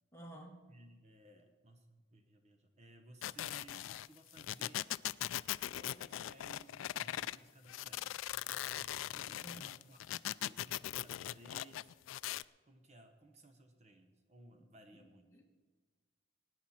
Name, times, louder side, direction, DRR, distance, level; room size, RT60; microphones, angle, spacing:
voice 1, 0.1-0.6 9.4-9.7 14.5-15.0 15.3-15.4, right 1 dB, 15° left, 1 dB, 1.5 m, -53 dB
voice 2, 0.7-4.8 5.7-10.0 10.4-11.9 12.6-15.4, right 2 dB, 35° right, 6 dB, 1.0 m, -60 dB
sound 1, 3.2-7.4 7.7-12.4, left 13 dB, 85° left, 0.3 m, -40 dB
19.5 x 9.4 x 4.3 m, 1.4 s
head